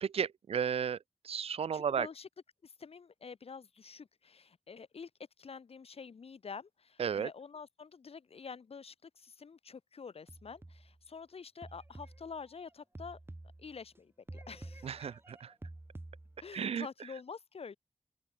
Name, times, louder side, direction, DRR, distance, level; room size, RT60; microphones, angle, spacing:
voice 1, 0.0-1.0 1.2-2.1 7.0-7.3 14.8-15.5 16.5-16.9, right 7 dB, 85° right, 0.5 m, -33 dB
voice 2, 1.7-2.3 2.6-5.1 5.4-13.2 13.6-14.9 16.4-17.8, left 5 dB, 85° left, 4.4 m, -48 dB
sound 1, 10.3-11.0 11.6-14.0 14.3-16.6, right 2 dB, 25° right, 3.9 m, -50 dB
open air
wide cardioid pair, 80°, 10 cm